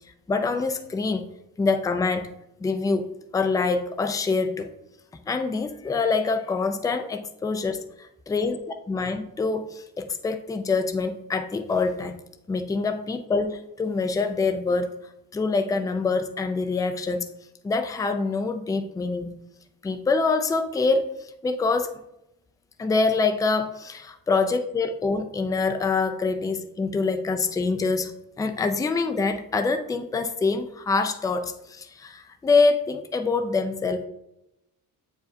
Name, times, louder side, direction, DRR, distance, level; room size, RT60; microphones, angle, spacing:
voice 1, 0.3-1.2 1.6-2.3 2.6-4.7 5.3-8.6 8.9-12.2 12.5-14.9 15.3-17.3 17.6-19.4 19.8-21.1 21.4-21.9 22.8-28.1 28.4-34.0, left 4 dB, 10° left, 7 dB, 0.3 m, -25 dB
8.1 x 4.8 x 2.5 m, 0.84 s
cardioid pair, 160°, 38 cm